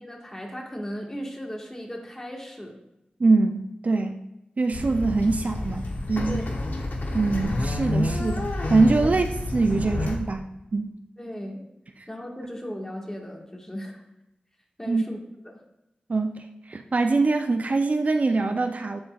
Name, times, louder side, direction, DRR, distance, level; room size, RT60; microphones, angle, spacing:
voice 1, 0.0-2.8 6.3-6.6 9.0-9.1 11.2-11.6 12.1-14.0 14.8-15.2 15.4-15.6, equal, 20° left, 0 dB, 1.4 m, -36 dB
voice 2, 3.2-4.2 4.6-6.4 7.1-9.3 9.5-10.5 10.7-10.9 14.9-15.0 16.1-19.0, right 3 dB, 55° right, 7 dB, 0.4 m, -23 dB
sound 1, 4.7-10.2, left 1 dB, 85° left, 0.8 m, -28 dB
11.0 x 4.3 x 2.3 m, 0.88 s
wide cardioid pair, 60°, 3 cm